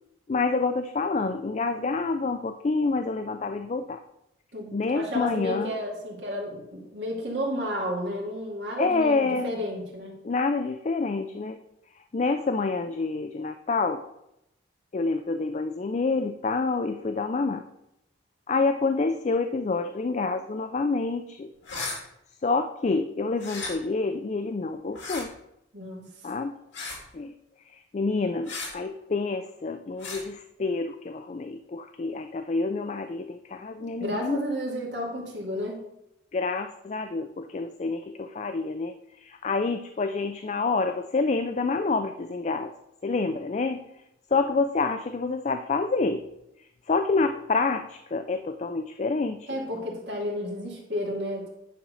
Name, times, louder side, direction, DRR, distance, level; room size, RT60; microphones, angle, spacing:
voice 1, 0.3-4.0 4.7-5.7 8.8-9.5 10.2-11.6 12.1-14.0 14.9-17.6 18.5-21.5 22.4-25.3 26.2-26.6 27.1-27.3 27.7-34.4 36.3-42.7 43.0-43.8 44.3-46.3 46.9-49.6, left 3 dB, 35° left, 8 dB, 0.3 m, -27 dB
voice 2, 4.5-10.2 25.7-26.3 33.8-35.8 49.5-51.5, equal, 60° right, -2 dB, 2.3 m, -32 dB
sound 1, 21.6-22.0 23.4-23.7 24.9-25.2 26.7-27.0 28.5-28.7 30.0-30.2, left 3 dB, 70° left, 2.9 m, -34 dB
10.0 x 3.8 x 6.3 m, 0.84 s
head